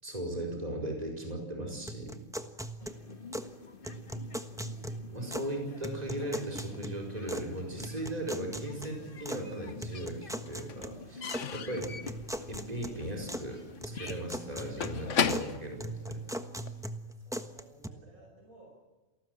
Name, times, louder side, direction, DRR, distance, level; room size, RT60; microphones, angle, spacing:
voice 1, 0.0-2.2 5.1-12.0 12.5-16.2, right 1 dB, 25° right, 1 dB, 5.0 m, -38 dB
sound 1, 1.9-3.5 3.8-5.5 5.8-7.5 7.8-9.4 9.8-11.4 11.8-13.5 13.8-15.5 15.8-17.9, right 1 dB, ahead, 1.1 m, -40 dB
sound 2, 2.8-15.6, left 4 dB, 40° left, 1.8 m, -48 dB
Slam / Squeak / Wood, 9.0-9.8 10.0-16.8, left 6 dB, 60° left, 1.4 m, -36 dB
voice 2, 17.1-18.8, right 2 dB, 75° right, 0 dB, 6.0 m, -57 dB
28.0 x 19.0 x 7.8 m, 1.2 s
omnidirectional pair, 1.5 m